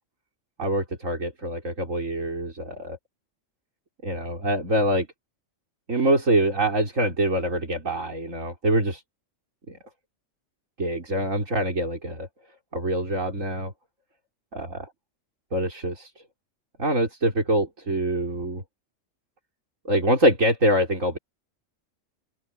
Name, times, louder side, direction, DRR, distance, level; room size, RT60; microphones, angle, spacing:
voice 1, 0.6-3.0 4.0-5.1 5.9-9.0 9.7-9.8 10.8-12.3 12.7-13.7 14.5-14.9 15.5-16.1 16.8-18.6 19.8-21.2, right 1 dB, 75° right, 5.0 m, -24 dB
omnidirectional pair, 1.4 m